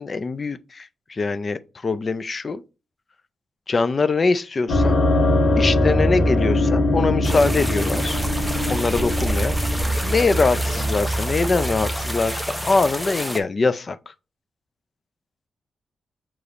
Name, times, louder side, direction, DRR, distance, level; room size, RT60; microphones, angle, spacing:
voice 1, 0.0-2.6 3.7-5.0 5.6-8.2 8.7-9.6 10.0-14.1, left 3 dB, 35° left, 0.4 m, -23 dB
sound 1, 4.7-13.0, left 1 dB, 65° left, 1.4 m, -22 dB
sound 2, 7.2-13.4, equal, 5° left, 0.7 m, -30 dB
6.6 x 2.9 x 2.5 m
wide cardioid pair, 120°, 0 cm